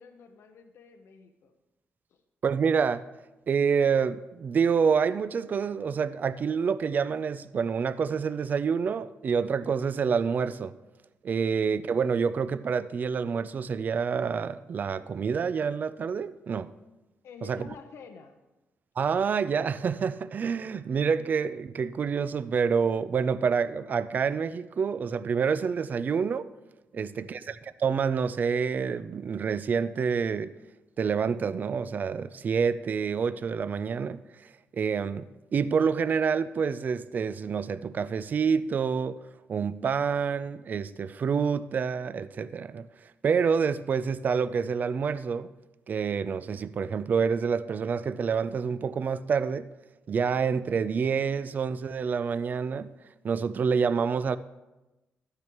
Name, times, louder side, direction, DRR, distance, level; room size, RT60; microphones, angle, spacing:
voice 1, 0.0-1.5 2.1-2.2 17.2-18.4 26.9-27.4, left 5 dB, 75° left, 0.7 m, -49 dB
voice 2, 2.4-3.0 3.5-10.7 11.2-16.7 17.4-17.7 19.0-26.5 26.9-30.5 31.0-39.2 39.5-45.5 45.9-49.7 50.1-52.9 53.2-54.4, right 6 dB, 40° right, 0.3 m, -27 dB
12.0 x 9.5 x 3.0 m
cardioid pair, 135°, 5 cm